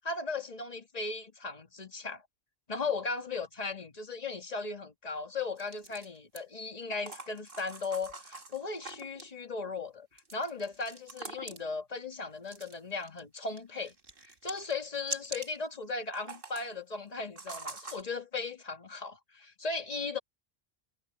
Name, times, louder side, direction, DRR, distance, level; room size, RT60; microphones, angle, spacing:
voice 1, 0.0-2.2 2.7-13.9 14.4-20.2, left 4 dB, 40° left, 1.9 m, -37 dB
sound 1, 5.6-6.4 6.9-9.3 10.2-11.7 12.5-13.2 13.5-15.6 16.0-16.7 17.4-18.0, right 3 dB, 55° right, 2.2 m, -44 dB
omnidirectional pair, 1.1 m